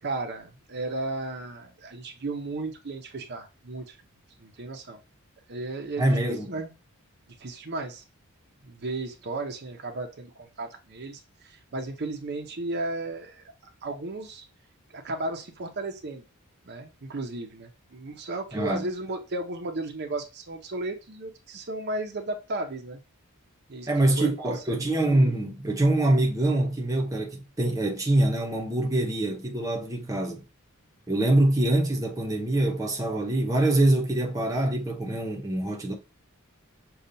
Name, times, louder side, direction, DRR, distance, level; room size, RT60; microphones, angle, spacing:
voice 1, 0.0-4.0 4.4-5.0 5.5-6.7 7.4-8.0 8.6-13.4 13.8-14.5 14.9-16.2 16.7-23.0 23.7-23.9 24.2-24.8, right 2 dB, 50° right, 0.7 m, -34 dB
voice 2, 6.0-6.5 18.5-18.9 23.9-30.4 31.1-35.9, right 1 dB, 15° right, 0.8 m, -24 dB
6.7 x 2.4 x 2.7 m
head